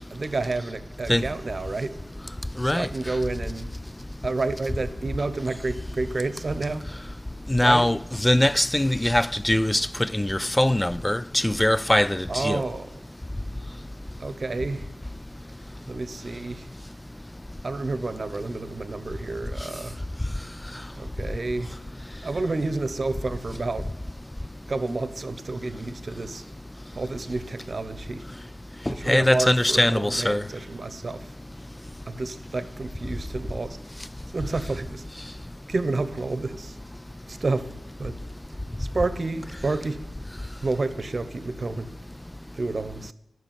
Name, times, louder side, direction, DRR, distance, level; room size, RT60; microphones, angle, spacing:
voice 1, 0.1-2.0 2.6-3.7 4.2-6.9 7.6-7.9 12.3-12.9 14.2-14.8 15.9-16.7 17.6-20.0 21.0-21.7 22.2-23.9 24.7-26.4 27.0-28.2 28.9-31.3 32.1-33.8 34.3-35.0 35.7-36.8 37.3-37.7 38.0-38.1 38.8-40.0 40.6-41.9 42.5-43.1, right 3 dB, 45° right, 1.0 m, -30 dB
voice 2, 2.6-2.9 7.5-12.6 28.9-30.4, left 1 dB, 10° left, 0.3 m, -22 dB
11.5 x 6.4 x 9.0 m
cardioid pair, 55°, 0 cm